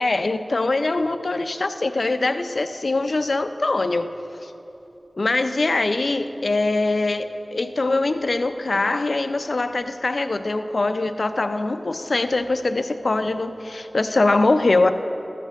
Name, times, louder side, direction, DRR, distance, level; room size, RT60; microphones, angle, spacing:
voice 1, 0.0-4.1 4.4-4.5 5.2-14.9, left 2 dB, 75° left, 9 dB, 0.4 m, -22 dB
12.5 x 5.8 x 7.2 m, 2.9 s
wide cardioid pair, 50°, 0 cm